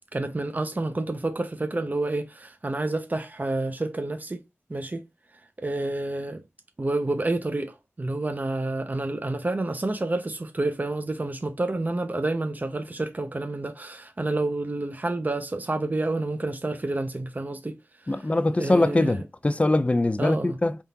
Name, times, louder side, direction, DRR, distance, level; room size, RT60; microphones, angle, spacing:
voice 1, 0.1-4.4 4.7-5.0 5.6-6.4 6.8-17.8 18.0-18.2 18.6-19.2 20.2-20.6, right 2 dB, 40° right, 0.7 m, -29 dB
voice 2, 18.1-20.8, left 2 dB, 30° left, 0.5 m, -22 dB
3.6 x 3.6 x 2.8 m
cardioid pair, 40°, 5 cm